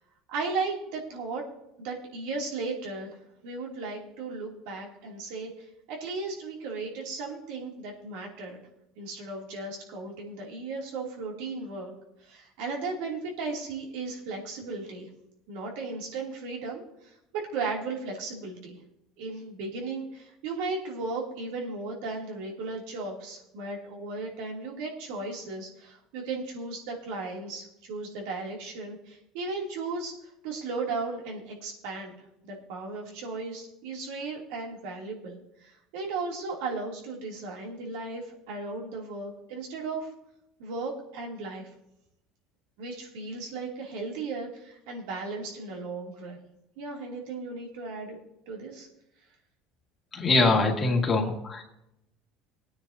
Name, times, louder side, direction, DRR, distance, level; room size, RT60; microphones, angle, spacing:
voice 1, 0.3-1.4 1.8-3.2 3.4-5.5 5.9-8.6 9.0-11.9 12.2-15.1 15.5-18.8 19.2-30.1 30.4-32.1 32.4-40.1 40.6-41.7 42.8-46.4 46.8-48.2 48.5-48.9, right 3 dB, 80° right, -1 dB, 3.0 m, -36 dB
voice 2, 50.1-51.6, left 3 dB, 30° left, 2 dB, 2.1 m, -23 dB
18.5 x 9.4 x 2.8 m, 0.82 s
supercardioid pair, 110°, 0 cm